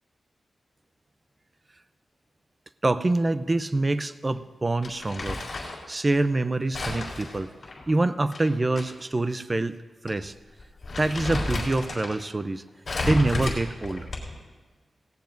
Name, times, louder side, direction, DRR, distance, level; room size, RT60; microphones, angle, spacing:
voice 1, 2.8-5.4 5.9-7.5 7.9-9.8 10.0-10.3 11.0-12.6 13.1-14.1, right 2 dB, 25° right, 12 dB, 0.5 m, -25 dB
Crumpling crinkling, 4.8-5.8 6.7-8.8 9.2-9.3 10.1-10.3 10.6-12.2 12.9-14.5, left 2 dB, 50° left, 3.5 m, -32 dB
17.5 x 17.5 x 2.6 m, 1.4 s
wide cardioid pair, 125°, 0 cm